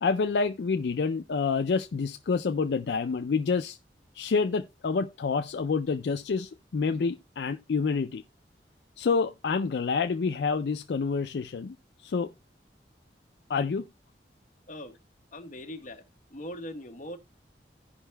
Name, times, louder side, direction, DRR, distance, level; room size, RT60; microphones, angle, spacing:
voice 1, 0.0-3.8 4.2-8.2 9.0-11.7 12.0-12.3 13.5-13.8, left 5 dB, 70° left, 0.4 m, -28 dB
voice 2, 15.3-16.0 16.3-17.2, left 1 dB, 45° left, 1.1 m, -40 dB
16.0 x 5.5 x 2.2 m
head